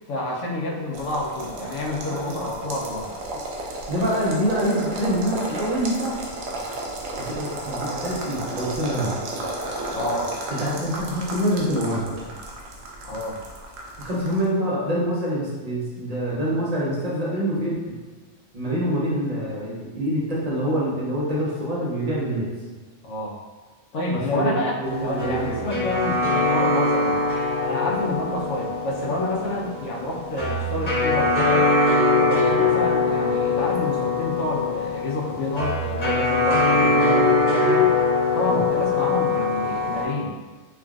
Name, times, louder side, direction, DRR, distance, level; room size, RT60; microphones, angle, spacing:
voice 1, 0.1-3.1 9.9-10.3 13.0-13.4 23.0-23.4 23.9-27.2 27.6-31.7 32.1-37.9 38.3-40.3, left 1 dB, 70° left, -3 dB, 0.9 m, -28 dB
sound 1, 0.9-14.4, right 2 dB, 80° right, 0.9 m, -33 dB
voice 2, 3.9-6.1 7.2-9.1 10.6-12.1 14.0-17.9 18.5-22.5 24.1-25.6 38.5-38.6, equal, 45° right, -6 dB, 0.5 m, -25 dB
sound 2, 24.8-40.0, left 3 dB, 50° left, 0.5 m, -22 dB
3.3 x 2.3 x 2.3 m, 1.4 s
omnidirectional pair, 1.4 m